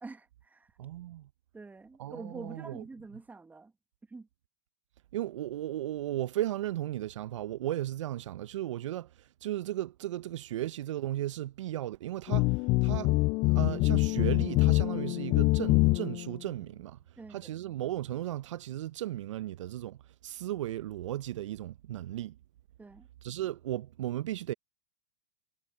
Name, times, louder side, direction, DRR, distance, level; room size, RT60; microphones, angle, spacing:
voice 1, 0.0-0.7 1.5-3.7 4.1-4.3 17.2-17.5 22.8-23.1, right 3 dB, 10° right, 1.7 m, -46 dB
voice 2, 0.8-1.3 2.0-2.8 5.1-17.0 17.3-22.4 23.2-24.5, right 13 dB, 65° right, 1.0 m, -36 dB
sound 1, 12.3-16.3, left 25 dB, 35° left, 0.4 m, -25 dB
hypercardioid pair, 105°, 17 cm